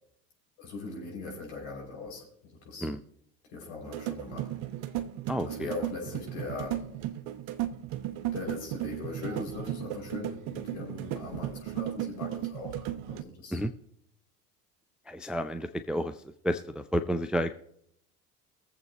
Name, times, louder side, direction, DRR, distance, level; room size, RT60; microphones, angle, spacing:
voice 1, 0.6-2.9 3.5-4.5 5.4-6.8 8.3-13.6, left 3 dB, 60° left, 0 dB, 5.8 m, -40 dB
sound 1, 3.8-13.2, right 12 dB, 60° right, 1.1 m, -35 dB
voice 2, 5.3-5.7 13.5-13.7 15.1-16.1 16.4-17.6, equal, ahead, 8 dB, 0.5 m, -30 dB
22.0 x 7.7 x 2.9 m, 0.70 s
figure-of-eight pair, 65°, 46 cm